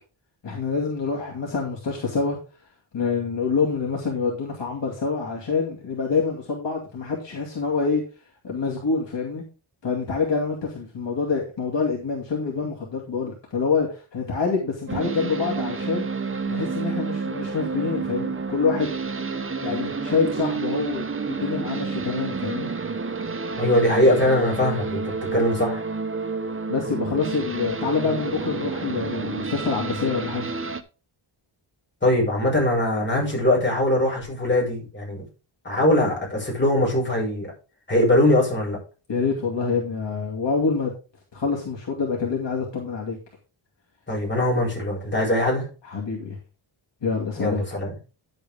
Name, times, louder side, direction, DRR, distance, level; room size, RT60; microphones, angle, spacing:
voice 1, 0.4-2.4 2.9-8.0 8.4-9.4 9.8-16.1 16.5-18.9 19.6-21.1 21.4-22.7 26.7-30.4 39.1-40.9 41.3-43.2 45.8-46.4 47.0-47.6, left 5 dB, 55° left, -2 dB, 2.5 m, -26 dB
sound 1, 14.9-30.8, right 4 dB, 25° right, 0.8 m, -29 dB
voice 2, 23.5-25.8 32.0-35.2 35.6-37.5 37.9-38.8 44.1-45.7 47.4-47.9, left 1 dB, 20° left, -1 dB, 5.8 m, -21 dB
10.5 x 8.2 x 3.6 m, 0.33 s
wide cardioid pair, 145°, 50 cm